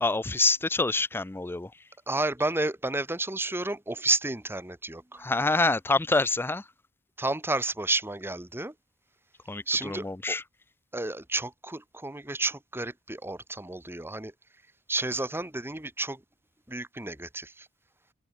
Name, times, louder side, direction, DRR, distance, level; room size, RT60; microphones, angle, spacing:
voice 1, 0.0-1.7 5.2-6.7 9.5-10.4, left 3 dB, 10° left, 0.4 m, -26 dB
voice 2, 2.1-5.2 7.2-8.7 9.7-10.4 10.9-14.3 14.9-16.2 16.7-17.7, right 2 dB, 10° right, 1.6 m, -31 dB
open air
head